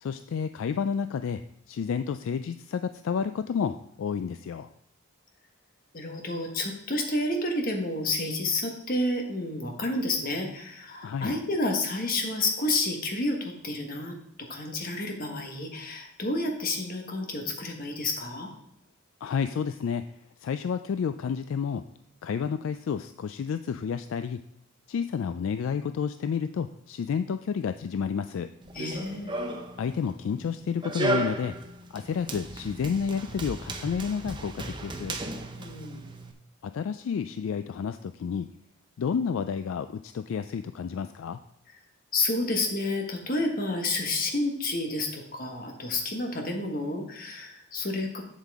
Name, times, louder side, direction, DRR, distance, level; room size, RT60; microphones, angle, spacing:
voice 1, 0.0-1.4 1.7-4.7 11.0-11.4 19.2-20.0 20.4-21.8 22.2-24.4 24.9-28.5 29.8-31.5 31.9-35.2 36.6-38.5 39.0-41.4, left 6 dB, 65° left, 10 dB, 0.3 m, -30 dB
voice 2, 5.9-18.5 28.7-29.4 35.6-36.1 42.1-48.2, left 2 dB, 40° left, 3 dB, 1.3 m, -30 dB
Run, 28.6-36.3, right 1 dB, 20° right, 0.6 m, -35 dB
7.5 x 7.3 x 3.5 m, 0.82 s
head